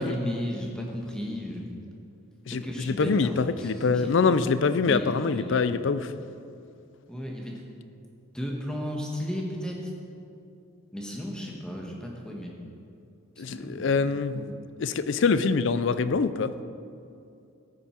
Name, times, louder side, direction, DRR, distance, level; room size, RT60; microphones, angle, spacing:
voice 1, 0.0-1.6 2.5-4.1 4.8-5.6 7.1-7.6 8.3-9.9 10.9-12.5 13.5-14.5, equal, 5° left, -1 dB, 1.2 m, -34 dB
voice 2, 2.5-6.1 13.4-14.5 14.8-16.5, left 4 dB, 60° left, 13 dB, 0.4 m, -25 dB
13.5 x 9.1 x 4.4 m, 2.5 s
head